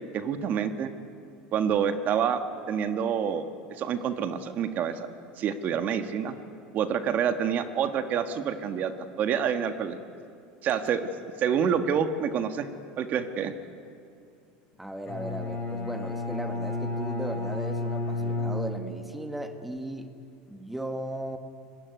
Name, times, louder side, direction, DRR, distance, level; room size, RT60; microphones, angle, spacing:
voice 1, 0.1-0.9 1.5-2.4 2.7-3.5 3.8-5.1 5.4-6.3 6.7-8.9 9.2-10.0 10.6-11.0 11.4-12.7 13.0-13.5, right 8 dB, 45° right, 8 dB, 1.6 m, -27 dB
voice 2, 14.8-20.2 20.5-21.4, right 1 dB, 5° right, 6 dB, 1.5 m, -37 dB
Bowed string instrument, 15.1-19.3, left 2 dB, 40° left, 5.5 m, -32 dB
25.0 x 21.0 x 9.4 m, 2.4 s
supercardioid pair, 125°, 4 cm